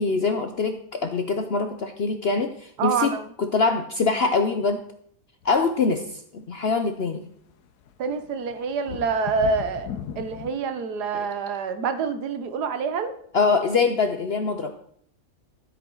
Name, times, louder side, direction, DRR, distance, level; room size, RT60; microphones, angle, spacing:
voice 1, 0.0-3.1 3.4-4.8 5.4-7.2 11.1-11.3 13.3-14.7, left 4 dB, 55° left, 7 dB, 0.7 m, -24 dB
voice 2, 2.8-3.3 8.0-9.9 10.2-13.1, right 5 dB, 75° right, 10 dB, 1.4 m, -26 dB
sound 1, 5.4-5.5 7.5-7.6 7.9-10.5, left 8 dB, 75° left, 1.3 m, -36 dB
13.0 x 8.2 x 3.8 m, 0.66 s
omnidirectional pair, 1.8 m